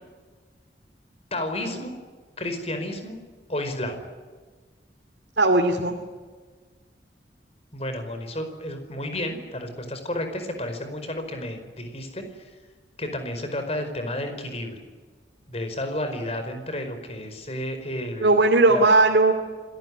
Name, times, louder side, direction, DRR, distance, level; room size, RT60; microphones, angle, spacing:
voice 1, 1.3-1.9 2.4-3.2 3.5-4.1 7.7-12.6 13.0-14.8 15.5-18.4 18.7-18.8, left 1 dB, 35° left, 7 dB, 4.9 m, -32 dB
voice 2, 5.4-5.9 18.2-19.3, right 2 dB, 80° right, 2 dB, 2.8 m, -18 dB
27.0 x 18.0 x 9.9 m, 1.4 s
head